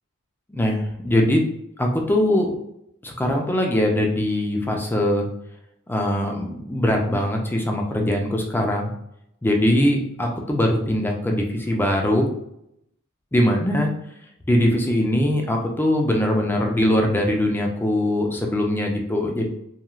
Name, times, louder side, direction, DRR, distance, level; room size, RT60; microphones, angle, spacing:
voice 1, 0.5-1.4 1.8-2.6 3.0-5.3 5.9-8.9 9.4-12.3 13.3-13.9 14.5-19.5, left 1 dB, 10° left, 1 dB, 0.4 m, -21 dB
3.0 x 2.3 x 2.3 m, 0.77 s
head